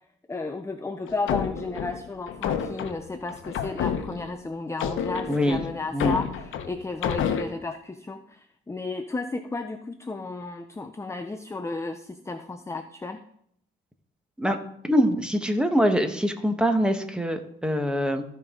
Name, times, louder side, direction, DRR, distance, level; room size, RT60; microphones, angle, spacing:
voice 1, 0.3-13.2, left 3 dB, 15° left, 7 dB, 0.6 m, -33 dB
sound 1, 1.1-4.4 4.8-7.4, left 8 dB, 80° left, 0.9 m, -30 dB
voice 2, 5.3-5.6 5.9-6.2 14.4-14.6 14.8-18.2, equal, 5° right, 6 dB, 1.2 m, -24 dB
15.0 x 5.3 x 3.7 m, 0.71 s
cardioid pair, 90°, 20 cm